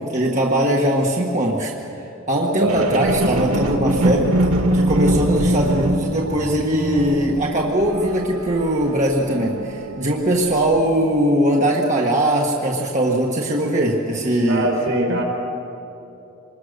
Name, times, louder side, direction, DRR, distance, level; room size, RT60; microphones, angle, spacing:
voice 1, 0.0-1.7 2.3-4.3 4.7-14.7 15.1-15.2, right 1 dB, 35° right, -1 dB, 1.5 m, -20 dB
voice 2, 2.6-2.9 14.5-15.2, right 1 dB, 75° right, -1 dB, 4.9 m, -22 dB
sound 1, 2.7-10.1 10.7-10.8, right 1 dB, 90° right, 1.4 m, -23 dB
25.0 x 21.0 x 6.6 m, 2.9 s
head